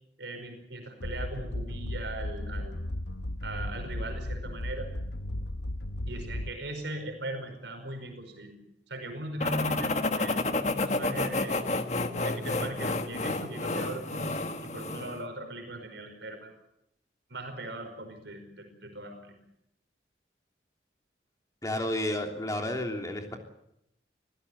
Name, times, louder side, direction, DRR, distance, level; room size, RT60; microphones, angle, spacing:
voice 1, 0.2-2.7 3.4-4.9 6.1-8.6 8.9-11.6 12.2-16.5 17.3-19.3, right 1 dB, 80° right, 4 dB, 5.2 m, -39 dB
sound 1, 1.0-6.8, left 1 dB, 85° left, 1.1 m, -35 dB
sound 2, 9.4-15.2, left 2 dB, 40° left, 1.6 m, -30 dB
voice 2, 21.6-23.4, left 1 dB, 20° left, 3 dB, 3.2 m, -31 dB
25.5 x 16.0 x 8.2 m, 0.79 s
head